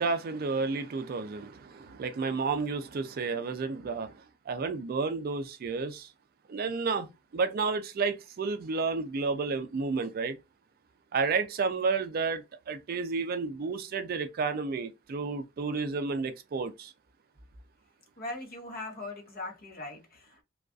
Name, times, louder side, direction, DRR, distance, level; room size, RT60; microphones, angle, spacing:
voice 1, 0.0-4.1 4.5-6.1 6.5-10.4 11.1-16.9, right 4 dB, 45° right, 0.4 m, -31 dB
voice 2, 18.2-20.4, left 2 dB, 45° left, 0.8 m, -40 dB
2.5 x 2.3 x 2.3 m
head